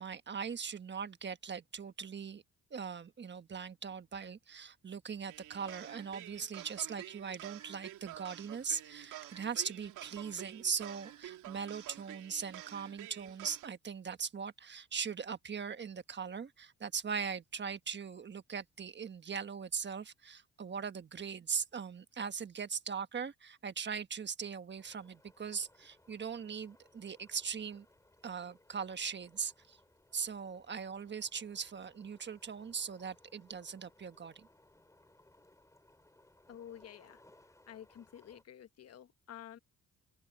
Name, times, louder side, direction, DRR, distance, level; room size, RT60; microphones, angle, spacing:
voice 1, 0.0-2.4 2.7-27.8 28.2-29.8 30.1-34.5, right 6 dB, 35° right, 1.3 m, -40 dB
sound 1, 5.3-13.7, right 13 dB, 85° right, 2.7 m, -49 dB
sound 2, 24.8-38.4, left 1 dB, 10° left, 4.1 m, -65 dB
voice 2, 36.5-37.2 37.7-39.6, left 10 dB, 55° left, 1.2 m, -50 dB
open air
cardioid pair, 90°, 30 cm